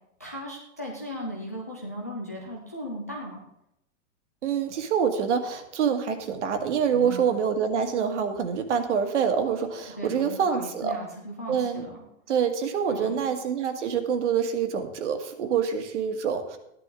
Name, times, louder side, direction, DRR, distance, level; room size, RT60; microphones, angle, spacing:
voice 1, 0.2-3.4 6.9-7.3 10.0-12.0 12.9-13.3, equal, 15° left, -3 dB, 0.4 m, -37 dB
voice 2, 4.4-10.9 11.5-11.8 12.3-16.6, right 7 dB, 60° right, 6 dB, 1.9 m, -26 dB
14.5 x 11.0 x 3.8 m, 0.82 s
supercardioid pair, 180°, 40 cm